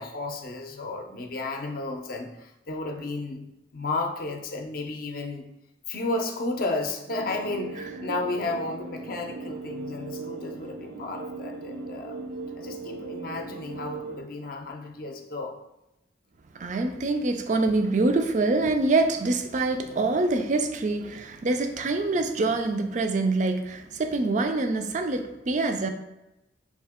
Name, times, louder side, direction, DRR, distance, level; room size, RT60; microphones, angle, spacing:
voice 1, 0.0-3.5 3.7-5.5 5.9-12.2 12.5-15.6, left 2 dB, 50° left, 0.5 m, -33 dB
sound 1, 7.1-14.2, right 3 dB, 80° right, 0.7 m, -38 dB
voice 2, 16.5-25.9, right 2 dB, 40° right, 0.4 m, -25 dB
5.4 x 2.8 x 3.5 m
head